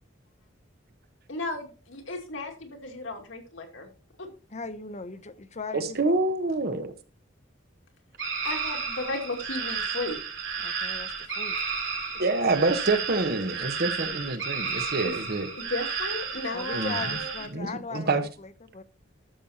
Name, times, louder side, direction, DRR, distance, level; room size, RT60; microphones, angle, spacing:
voice 1, 1.3-3.9 4.2-4.3 8.4-10.2 15.0-15.1 15.6-17.3, left 2 dB, 80° left, 2.4 m, -34 dB
voice 2, 4.5-6.2 10.6-11.6 16.5-18.8, left 4 dB, 35° left, 0.8 m, -39 dB
voice 3, 5.7-6.9 12.2-15.5 16.7-17.0 17.5-18.2, right 3 dB, 55° right, 1.1 m, -27 dB
sound 1, 8.2-17.5, right 5 dB, 75° right, 2.7 m, -32 dB
12.5 x 7.0 x 2.9 m
head